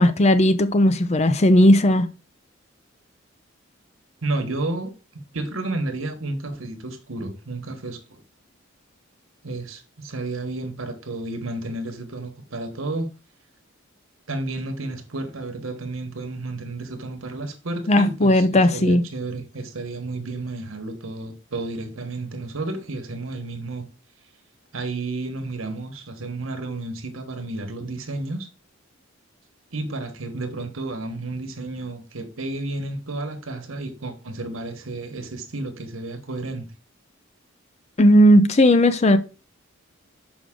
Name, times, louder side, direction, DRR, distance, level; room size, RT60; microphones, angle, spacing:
voice 1, 0.0-2.1 17.9-19.0 38.0-39.2, left 1 dB, 35° left, 0.6 m, -16 dB
voice 2, 4.2-8.2 9.4-13.1 14.3-23.9 24.7-28.5 29.7-36.7, right 2 dB, 80° right, 1.3 m, -31 dB
6.3 x 5.2 x 3.7 m
head